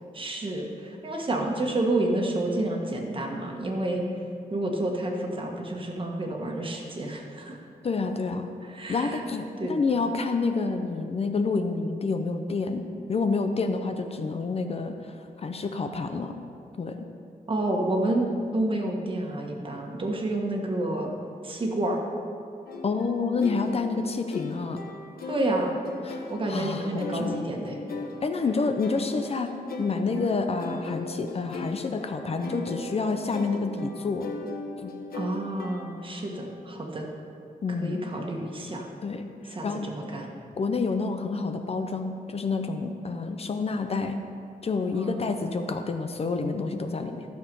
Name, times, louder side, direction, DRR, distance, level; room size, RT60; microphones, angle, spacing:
voice 1, 0.1-4.0 4.5-7.6 8.7-9.2 9.6-9.8 17.5-21.1 21.4-22.0 25.3-25.8 26.3-27.8 35.1-37.1 37.8-38.9 39.5-40.3 44.9-45.3, right 1 dB, 35° right, 1 dB, 1.4 m, -29 dB
voice 2, 7.8-8.5 8.9-16.4 16.8-17.1 22.8-24.8 26.0-27.4 28.2-34.3 34.8-34.9 37.6-38.0 39.0-39.9 40.6-44.2 44.6-47.3, left 4 dB, 40° left, 6 dB, 0.6 m, -28 dB
sound 1, 22.7-36.3, left 3 dB, 75° left, 1.1 m, -39 dB
13.0 x 6.9 x 5.4 m, 2.4 s
wide cardioid pair, 150°, 15 cm